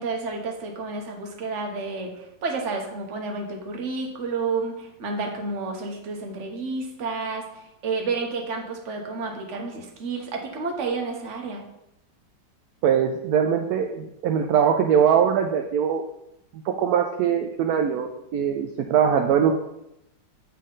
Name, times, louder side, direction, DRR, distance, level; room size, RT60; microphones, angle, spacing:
voice 1, 0.0-11.6, right 4 dB, 50° right, 2 dB, 1.2 m, -30 dB
voice 2, 12.8-16.0 16.5-19.5, right 8 dB, 70° right, 3 dB, 0.9 m, -22 dB
8.3 x 4.1 x 3.8 m, 0.84 s
omnidirectional pair, 2.0 m